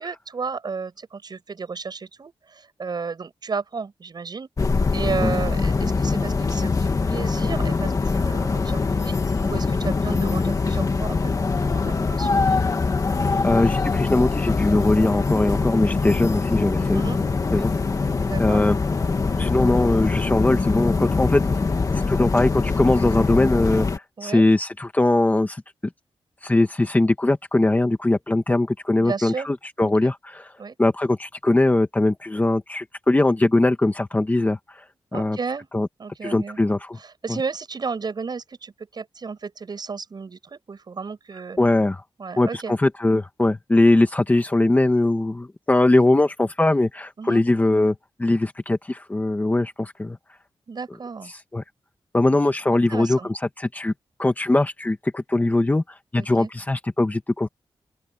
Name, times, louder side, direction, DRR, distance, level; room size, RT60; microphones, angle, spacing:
voice 1, 0.0-9.1 9.4-11.2 11.6-12.4 16.9-17.2 18.3-18.6 24.2-24.4 29.0-29.5 29.8-30.1 30.6-30.7 35.1-35.7 36.0-36.6 37.0-41.6 42.2-42.8 47.2-47.4 50.7-51.3 52.7-53.3 56.2-56.5, right 5 dB, 45° right, 7.7 m, -33 dB
sound 1, 4.6-24.0, left 4 dB, 35° left, 2.1 m, -23 dB
voice 2, 13.4-17.0 17.5-17.7 18.0-18.1 18.4-18.8 19.4-21.4 22.1-23.9 24.2-25.6 26.4-30.5 30.8-34.6 35.1-35.4 35.7-35.9 36.2-37.0 41.6-42.0 42.4-50.2 51.5-51.6 52.1-53.9 54.2-57.5, left 2 dB, 15° left, 1.2 m, -21 dB
open air
wide cardioid pair, 170°, 10 cm